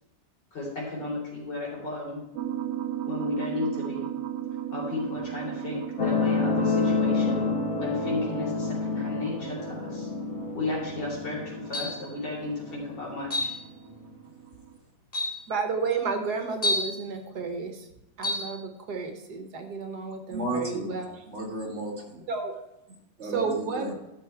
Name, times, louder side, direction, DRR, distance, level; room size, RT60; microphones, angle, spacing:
voice 1, 0.5-2.2 3.0-4.1 4.7-7.5 7.8-10.1 10.5-13.5, left 2 dB, 75° left, -4 dB, 4.5 m, -34 dB
sound 1, 2.3-14.8, right 11 dB, 80° right, 1.2 m, -37 dB
sound 2, 6.0-13.0 13.9-14.0, left 3 dB, 55° left, 1.6 m, -28 dB
sound 3, 11.7-12.1 13.3-13.6 14.5-14.6 15.1-15.4 16.6-17.0 18.2-18.5, left 2 dB, 20° left, 2.7 m, -28 dB
voice 2, 15.5-17.9 18.2-21.2 22.3-22.6 23.3-23.9, right 5 dB, 65° right, 5 dB, 1.6 m, -31 dB
voice 3, 20.3-22.2 23.2-24.0, right 1 dB, 40° right, -1 dB, 2.1 m, -34 dB
12.5 x 6.5 x 4.5 m, 0.92 s
omnidirectional pair, 1.9 m